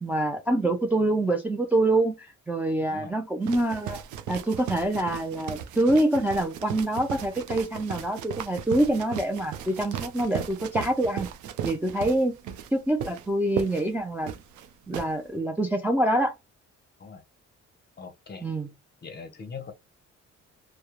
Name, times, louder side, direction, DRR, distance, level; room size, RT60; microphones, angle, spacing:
voice 1, 0.0-11.3 11.6-12.4 12.7-14.3 14.9-16.3 18.4-18.7, right 1 dB, 5° right, 0.3 m, -26 dB
sound 1, 3.4-15.1, right 9 dB, 75° right, 0.5 m, -36 dB
voice 2, 18.0-18.5 19.0-19.7, left 5 dB, 35° left, 0.6 m, -41 dB
2.2 x 2.0 x 2.8 m
cardioid pair, 90°, 30 cm